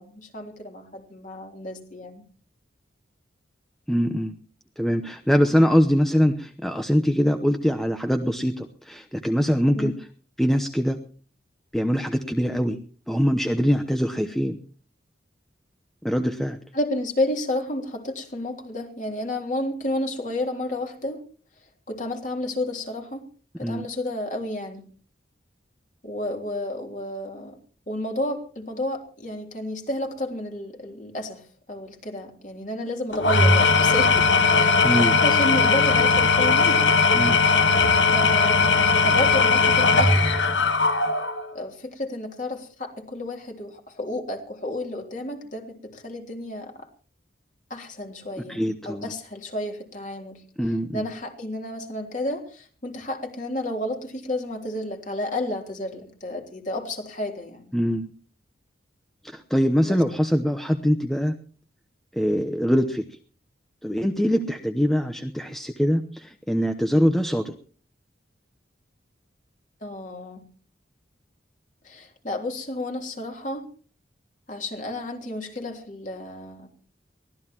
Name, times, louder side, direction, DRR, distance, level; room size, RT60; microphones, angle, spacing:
voice 1, 0.0-2.2 9.7-9.9 16.7-21.2 21.9-23.2 23.6-24.8 26.0-27.6 27.9-34.2 34.5-36.8 38.1-40.6 41.5-46.9 47.7-50.4 50.9-57.7 59.8-60.0 64.4-64.5 69.8-70.4 71.8-73.6 74.5-76.7, left 1 dB, 40° left, 3 dB, 3.3 m, -31 dB
voice 2, 3.9-4.3 4.8-10.1 10.4-11.0 11.7-12.8 13.1-14.6 16.0-16.6 23.6-23.9 34.8-35.2 37.1-37.4 48.5-49.1 50.6-51.1 57.7-58.1 59.2-61.3 62.1-63.0 63.8-67.5, equal, ahead, 6 dB, 0.9 m, -23 dB
Engine / Tools, 33.1-41.4, left 4 dB, 80° left, 1.5 m, -19 dB
23.5 x 17.0 x 3.0 m, 0.41 s
head